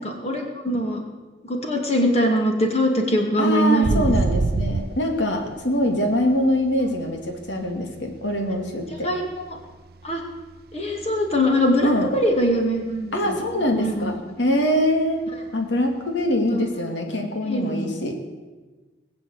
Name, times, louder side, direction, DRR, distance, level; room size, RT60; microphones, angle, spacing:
voice 1, 0.2-1.0 1.5-4.1 9.0-9.6 10.0-10.2 10.7-13.4 13.8-14.1 16.5-16.6 17.5-18.0, equal, 35° left, 2 dB, 2.5 m, -22 dB
voice 2, 3.4-9.1 11.8-12.1 13.1-18.2, left 1 dB, 85° left, 3 dB, 2.3 m, -23 dB
sound 1, 3.8-7.2 7.5-9.8 10.0-10.4 10.7-12.6 12.9-13.0 13.4-13.7 14.1-14.2 16.4-16.5, right 3 dB, 55° right, 0.5 m, -26 dB
20.0 x 7.6 x 8.0 m, 1.3 s
head